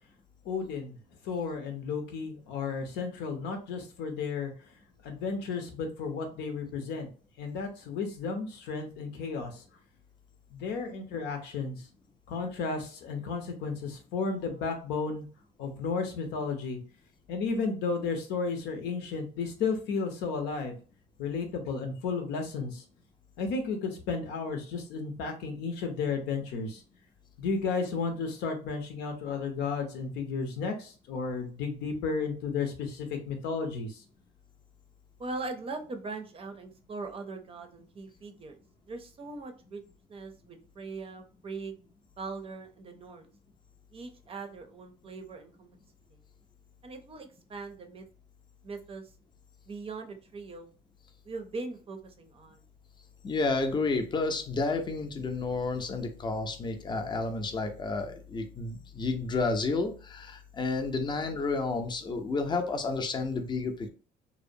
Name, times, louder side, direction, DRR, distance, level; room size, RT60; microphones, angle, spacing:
voice 1, 0.4-0.9 1.2-4.5 5.0-7.1 7.4-9.6 10.5-11.8 12.3-15.3 15.6-16.8 17.3-20.8 21.2-22.8 23.4-26.8 27.4-34.0, left 4 dB, 90° left, 5 dB, 0.7 m, -33 dB
voice 2, 35.2-38.6 38.9-39.8 40.1-41.8 42.2-43.3 43.9-45.7 46.1-46.2 46.8-48.0 48.6-49.1 49.7-50.7 51.2-52.6, right 3 dB, 35° right, 6 dB, 0.5 m, -41 dB
voice 3, 53.2-63.9, left 3 dB, 25° left, 6 dB, 0.5 m, -31 dB
2.7 x 2.0 x 2.6 m, 0.37 s
cardioid pair, 110°, 17 cm